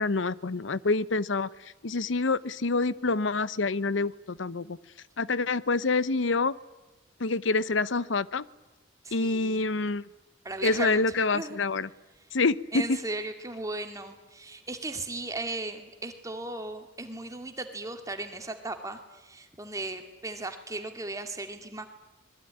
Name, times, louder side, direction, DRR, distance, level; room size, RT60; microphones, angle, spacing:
voice 1, 0.0-1.5 1.8-4.8 5.2-6.5 7.2-8.4 9.1-10.1 10.6-11.9 12.3-13.0, left 3 dB, 80° left, 18 dB, 0.8 m, -27 dB
voice 2, 9.0-9.6 10.4-11.0 11.3-11.6 12.7-21.9, right 2 dB, 15° right, 6 dB, 2.5 m, -36 dB
25.0 x 21.5 x 10.0 m, 1.1 s
head